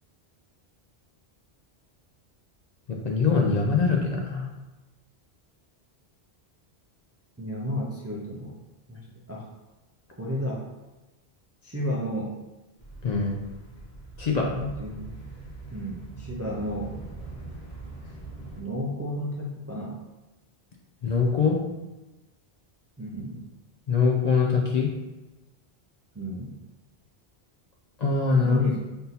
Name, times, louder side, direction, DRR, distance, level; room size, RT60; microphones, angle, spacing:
voice 1, 2.9-4.5 13.0-13.4 14.2-14.5 21.0-21.6 23.9-24.9 28.0-28.6, left 4 dB, 55° left, -1 dB, 0.5 m, -23 dB
voice 2, 7.4-8.6 8.9-9.5 10.2-10.6 11.6-12.4 14.4-15.2 15.7-17.0 18.0-18.2 18.6-20.0 23.0-23.4 26.1-26.6 28.4-28.8, equal, 25° right, -3 dB, 0.3 m, -32 dB
sound 1, 12.8-18.6, right 2 dB, 75° left, 1.5 m, -42 dB
3.6 x 2.8 x 4.0 m, 1.1 s
omnidirectional pair, 1.1 m